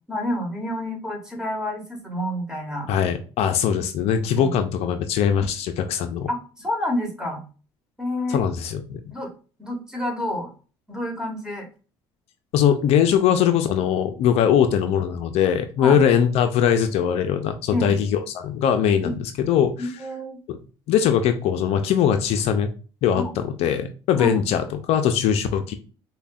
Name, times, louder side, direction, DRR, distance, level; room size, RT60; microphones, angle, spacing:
voice 1, 0.1-2.9 4.3-4.5 6.3-7.4 8.0-8.4 9.1-9.3 9.6-10.5 10.9-11.7 15.8-16.0 17.7-18.0 19.0-19.1 19.8-20.4 23.1-23.3 24.2-24.3, left 1 dB, 5° right, 1 dB, 1.6 m, -28 dB
voice 2, 2.9-6.3 8.3-9.0 12.5-19.9 20.5-20.6 20.9-22.7 23.0-25.7, left 8 dB, 65° left, 8 dB, 0.4 m, -21 dB
5.3 x 2.2 x 2.3 m, 0.36 s
hypercardioid pair, 65°, 11 cm